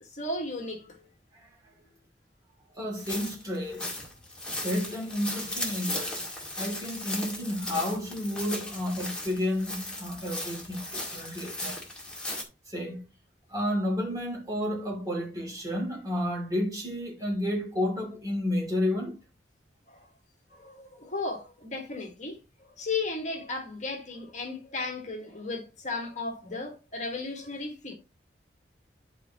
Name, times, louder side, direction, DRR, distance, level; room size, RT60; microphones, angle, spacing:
voice 1, 0.1-1.1 19.9-20.0 20.5-27.9, left 3 dB, 45° left, 1.5 m, -35 dB
voice 2, 2.8-3.9 4.6-6.2 6.6-11.8 12.7-13.0 13.5-19.2, left 1 dB, 20° right, 2.5 m, -31 dB
sound 1, 3.0-12.4, left 1 dB, 5° left, 2.0 m, -37 dB
11.0 x 4.6 x 2.9 m
head